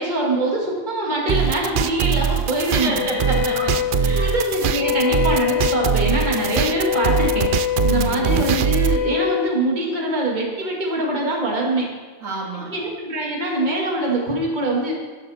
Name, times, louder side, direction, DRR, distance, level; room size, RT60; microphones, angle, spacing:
voice 1, 0.0-3.0 3.5-3.6 4.1-7.5 7.8-11.9 12.5-14.9, right 1 dB, 35° right, -2 dB, 2.1 m, -23 dB
sound 1, 1.3-9.0, right 9 dB, 65° right, 0.5 m, -22 dB
voice 2, 2.7-4.4 7.9-8.5 12.2-12.7, right 3 dB, 90° right, -3 dB, 2.8 m, -29 dB
Wind instrument woodwind instrument, 2.9-9.5, left 10 dB, 55° left, 1.0 m, -24 dB
12.0 x 10.5 x 4.2 m, 1.4 s
omnidirectional pair, 1.4 m